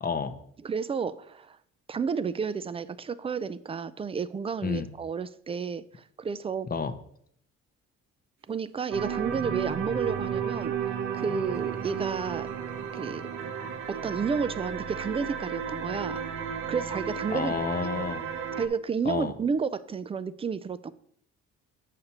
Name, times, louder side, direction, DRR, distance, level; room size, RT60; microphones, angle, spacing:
voice 1, 0.0-0.4 4.6-4.9 6.7-7.0 17.3-18.3 19.0-19.3, left 5 dB, 30° left, 0.7 m, -30 dB
voice 2, 0.6-1.6 1.9-6.7 8.5-10.7 11.1-12.5 12.9-13.2 13.9-16.2 16.7-17.5 18.6-20.9, right 6 dB, 20° right, 0.3 m, -31 dB
sound 1, 8.9-18.7, right 7 dB, 75° right, 0.8 m, -33 dB
sound 2, 9.3-10.5 10.7-11.8, right 4 dB, 50° right, 0.9 m, -43 dB
8.2 x 6.6 x 2.9 m
cardioid pair, 90°, 30 cm